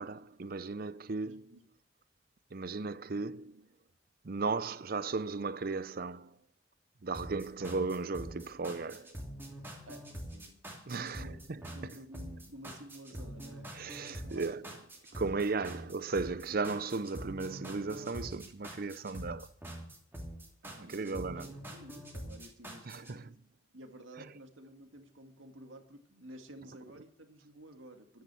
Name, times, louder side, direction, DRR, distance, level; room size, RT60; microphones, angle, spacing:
voice 1, 0.0-1.4 2.5-3.7 4.2-6.4 7.0-9.2 10.9-11.9 13.7-14.6 15.1-19.5 20.8-21.6 22.8-23.3 24.2-24.3, right 4 dB, 50° right, 0.6 m, -36 dB
voice 2, 1.2-1.6 9.9-10.6 10.9-13.8 14.1-14.6 20.6-21.4 21.7-23.4 23.7-28.2, equal, 85° right, 2.0 m, -52 dB
sound 1, 7.1-23.1, equal, 10° right, 3.0 m, -45 dB
13.0 x 10.0 x 6.9 m
head